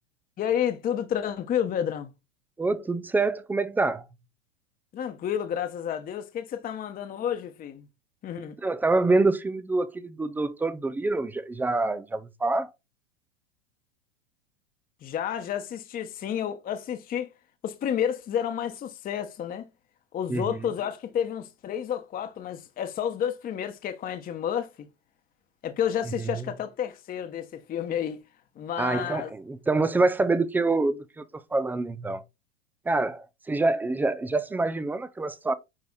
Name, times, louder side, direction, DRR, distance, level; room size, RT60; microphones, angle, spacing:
voice 1, 0.4-2.1 4.9-7.9 8.2-8.6 15.0-17.3 17.6-19.6 20.1-24.9 25.6-28.2 28.6-29.3, left 9 dB, 25° left, 1.0 m, -30 dB
voice 2, 2.6-4.0 8.6-12.7 20.3-20.7 26.3-26.4 28.8-31.3 31.5-32.2 32.9-35.5, right 3 dB, 5° right, 0.4 m, -26 dB
9.7 x 3.4 x 4.0 m
hypercardioid pair, 110°, 37 cm